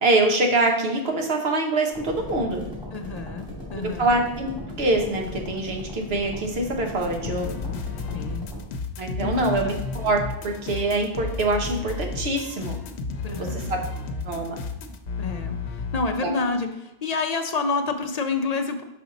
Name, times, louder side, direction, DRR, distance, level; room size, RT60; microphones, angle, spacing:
voice 1, 0.0-2.6 3.8-7.6 9.0-12.8 13.4-13.8 14.2-14.6 16.2-16.4, right 2 dB, 75° right, 2 dB, 1.2 m, -24 dB
sound 1, 1.9-8.6, left 1 dB, 5° right, 2.4 m, -37 dB
voice 2, 2.9-4.1 8.1-8.5 9.2-9.8 13.2-13.7 15.2-18.8, left 4 dB, 50° left, 6 dB, 0.5 m, -29 dB
sound 2, 7.0-16.1, left 4 dB, 85° left, 0.9 m, -32 dB
5.7 x 5.2 x 3.9 m, 0.94 s
omnidirectional pair, 1.1 m